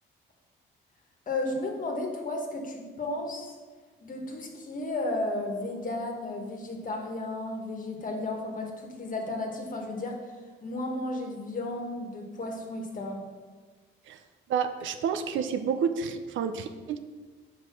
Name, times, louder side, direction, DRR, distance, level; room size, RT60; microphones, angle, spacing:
voice 1, 1.3-3.5 4.0-10.2 10.6-13.2, left 2 dB, 40° left, 2 dB, 1.4 m, -33 dB
voice 2, 14.5-17.0, right 7 dB, 75° right, 9 dB, 0.6 m, -29 dB
5.6 x 4.9 x 6.1 m, 1.4 s
cardioid pair, 90°, 20 cm